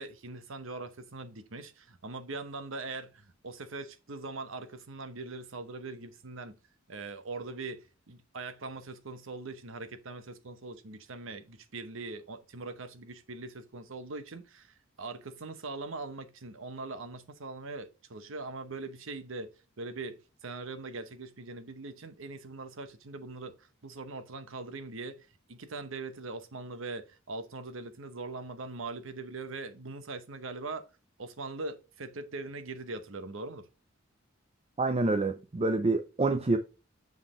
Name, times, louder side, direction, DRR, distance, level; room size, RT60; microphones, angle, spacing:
voice 1, 0.0-6.6 6.9-19.5 19.8-30.9 31.2-33.7, right 3 dB, 70° right, 0.9 m, -41 dB
voice 2, 34.8-36.6, right 3 dB, 30° right, 0.5 m, -27 dB
7.3 x 4.0 x 3.7 m
head